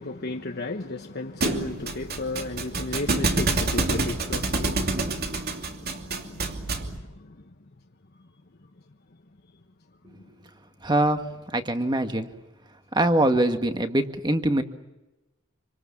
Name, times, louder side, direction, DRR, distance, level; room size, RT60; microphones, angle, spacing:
voice 1, 0.0-4.8, left 2 dB, 50° left, 3 dB, 1.2 m, -33 dB
Thump thud, 1.4-7.0, right 2 dB, 45° right, 2.9 m, -27 dB
voice 2, 10.8-11.2 11.5-12.3 12.9-14.6, right 1 dB, 20° right, 7 dB, 1.8 m, -23 dB
27.5 x 26.0 x 7.2 m, 1.0 s
head